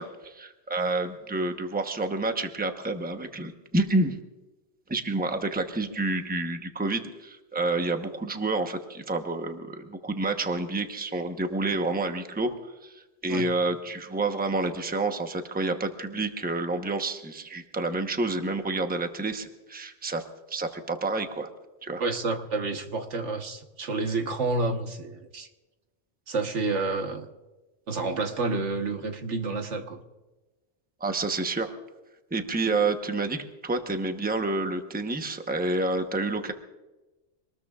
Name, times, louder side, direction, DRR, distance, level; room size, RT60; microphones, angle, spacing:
voice 1, 0.0-4.2 4.9-20.2 20.5-21.5 21.8-22.0 31.0-31.7 32.3-36.5, right 2 dB, 10° right, 6 dB, 0.9 m, -29 dB
voice 2, 22.0-25.5 26.3-27.3 27.9-30.0, right 3 dB, 75° right, 5 dB, 1.5 m, -29 dB
25.5 x 20.0 x 2.4 m, 1.1 s
omnidirectional pair, 1.2 m